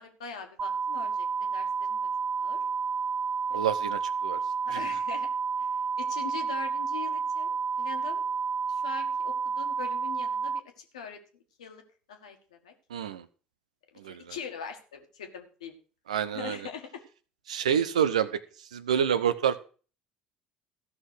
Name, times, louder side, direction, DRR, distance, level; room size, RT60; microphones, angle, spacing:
voice 1, 0.0-2.1 2.4-2.6 4.7-5.3 5.6-5.7 6.0-8.2 8.7-11.2 11.6-12.7 14.0-15.7 16.3-17.0, left 6 dB, 85° left, 5 dB, 1.7 m, -42 dB
sound 1, 0.6-10.6, right 5 dB, 40° right, 0.4 m, -30 dB
voice 2, 3.5-4.4 4.7-4.8 12.9-13.2 14.0-14.2 16.1-16.6 17.5-18.4 18.7-19.6, right 8 dB, 85° right, 13 dB, 0.7 m, -27 dB
14.0 x 5.9 x 6.3 m, 0.39 s
hypercardioid pair, 60°, 4 cm